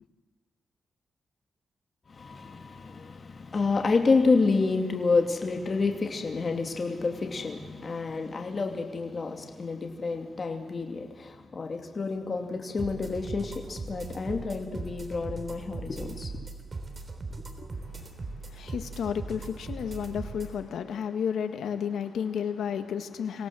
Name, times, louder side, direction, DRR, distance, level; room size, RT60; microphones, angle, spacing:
voice 1, 2.1-16.5 17.6-17.7, left 4 dB, 45° left, 2.7 m, -29 dB
sound 1, 12.8-20.5, right 3 dB, 35° right, 3.4 m, -39 dB
voice 2, 17.7-23.5, left 7 dB, 90° left, 1.6 m, -32 dB
25.0 x 17.5 x 7.8 m
cardioid pair, 90°, 0 cm